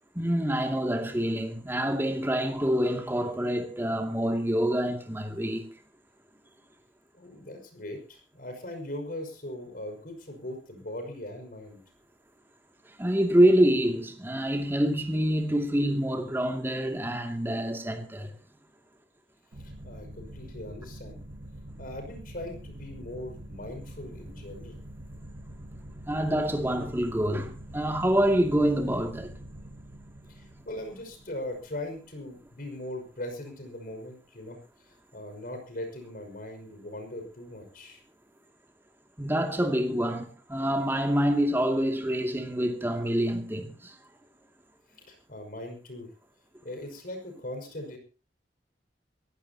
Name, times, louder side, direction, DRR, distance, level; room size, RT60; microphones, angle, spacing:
voice 1, 0.2-5.7 13.0-18.3 26.1-29.3 39.2-43.9, right 1 dB, 15° right, 2.4 m, -26 dB
voice 2, 7.1-11.8 19.6-21.2 21.8-24.8 30.3-34.6 34.8-38.0 44.9-46.1 46.6-48.0, left 1 dB, 55° left, 5.7 m, -40 dB
sound 1, 19.5-32.8, right 1 dB, 75° right, 1.7 m, -45 dB
23.0 x 15.5 x 2.9 m
head